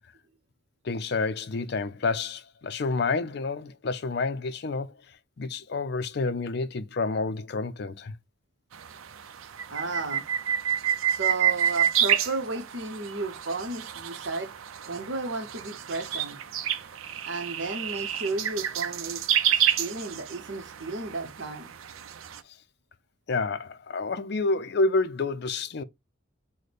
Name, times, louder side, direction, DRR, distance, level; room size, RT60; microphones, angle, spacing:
voice 1, 0.8-5.0 5.4-8.1 22.5-22.6 23.3-25.8, left 3 dB, 55° left, 0.5 m, -29 dB
sound 1, 8.7-22.4, right 10 dB, 85° right, 0.5 m, -29 dB
voice 2, 9.7-10.3 11.1-14.5 14.9-16.4 17.2-21.7, right 2 dB, 65° right, 0.9 m, -33 dB
4.9 x 2.2 x 4.1 m
head